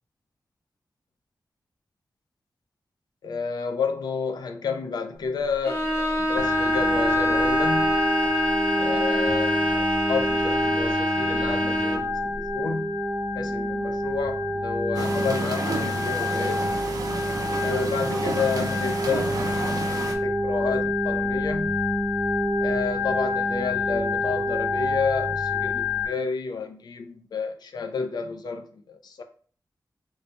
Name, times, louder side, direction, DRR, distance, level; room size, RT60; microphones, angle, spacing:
voice 1, 3.2-8.0 8.8-13.0 13.3-16.7 17.6-21.8 22.6-29.2, left 5 dB, 75° left, 0.5 m, -31 dB
Bowed string instrument, 5.6-12.1, right 1 dB, 35° left, 0.8 m, -25 dB
Organ, 6.4-26.1, left 2 dB, 5° right, 0.4 m, -27 dB
sound 1, 14.9-20.1, right 3 dB, 60° right, 0.6 m, -31 dB
3.1 x 2.1 x 3.7 m
wide cardioid pair, 165°, 7 cm